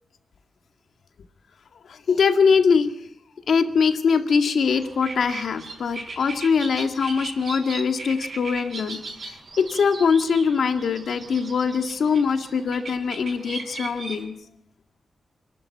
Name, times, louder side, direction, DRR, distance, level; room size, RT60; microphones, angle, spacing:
voice 1, 1.9-2.9 3.5-14.3, left 5 dB, 70° left, 6 dB, 2.0 m, -22 dB
sound 1, 4.6-14.2, right 3 dB, 50° right, 5.3 m, -38 dB
27.5 x 12.0 x 9.2 m, 0.73 s
wide cardioid pair, 160°, 0 cm